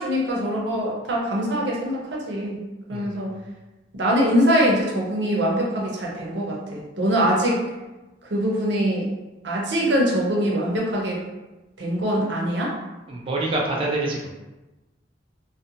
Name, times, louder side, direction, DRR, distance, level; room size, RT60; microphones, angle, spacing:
voice 1, 0.0-2.6 2.9-3.3 3.9-7.6 8.3-9.1 9.4-11.2 11.8-12.7, equal, 85° right, -3 dB, 0.6 m, -23 dB
voice 2, 2.9-3.3 13.1-14.3, right 2 dB, 30° right, -3 dB, 0.4 m, -26 dB
2.5 x 2.1 x 2.7 m, 1.1 s
head